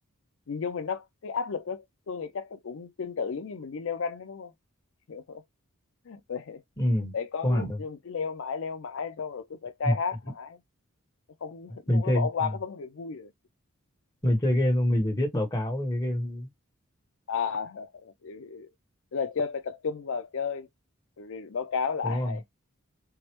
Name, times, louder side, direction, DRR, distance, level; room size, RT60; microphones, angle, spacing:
voice 1, 0.5-4.5 5.1-5.4 6.0-6.6 6.9-10.6 11.4-13.3 17.3-18.7 19.1-20.7 21.2-22.4, left 5 dB, 65° left, 0.5 m, -33 dB
voice 2, 6.8-7.1 7.4-7.8 9.8-9.9 11.9-12.3 14.2-16.5 22.0-22.3, left 1 dB, 20° left, 1.1 m, -25 dB
4.7 x 2.0 x 2.9 m
head